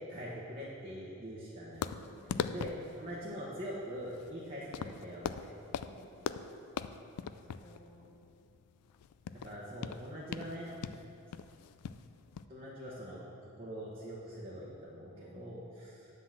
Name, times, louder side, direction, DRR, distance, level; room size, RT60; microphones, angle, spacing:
voice 1, 0.0-1.9 2.4-2.7 3.0-5.5 9.4-10.7 12.5-13.2 13.6-16.1, equal, 25° right, -7 dB, 1.1 m, -43 dB
sound 1, 1.8-12.4, left 7 dB, 85° left, 0.3 m, -41 dB
voice 2, 2.1-2.6 5.8-6.2 7.4-8.1 15.1-15.7, left 1 dB, 20° left, -4 dB, 1.4 m, -57 dB
9.8 x 3.9 x 7.4 m, 2.7 s
head